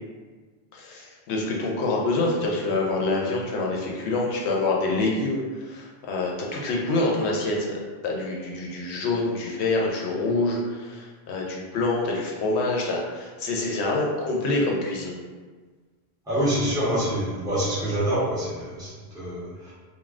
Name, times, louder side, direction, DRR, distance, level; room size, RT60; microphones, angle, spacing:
voice 1, 0.7-15.2, left 2 dB, 80° left, -2 dB, 0.9 m, -26 dB
voice 2, 16.3-19.7, right 1 dB, 5° right, -11 dB, 0.9 m, -26 dB
3.2 x 2.2 x 2.4 m, 1.4 s
omnidirectional pair, 1.1 m